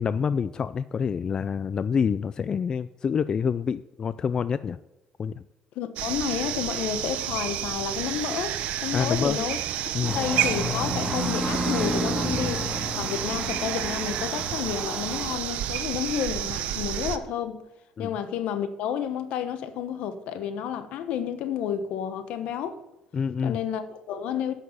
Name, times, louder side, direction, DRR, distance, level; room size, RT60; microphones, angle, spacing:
voice 1, 0.0-4.8 5.2-5.4 8.9-9.4 9.9-10.2 18.0-18.1 23.1-23.6, left 6 dB, 35° left, 0.3 m, -27 dB
voice 2, 5.7-9.6 10.1-12.7 13.0-17.6 18.0-22.8 23.4-24.5, left 8 dB, 75° left, 1.1 m, -30 dB
sound 1, 6.0-17.2, right 12 dB, 75° right, 0.7 m, -30 dB
sound 2, 10.0-15.4, right 1 dB, 15° right, 2.6 m, -31 dB
9.3 x 6.5 x 7.1 m
cardioid pair, 110°, 2 cm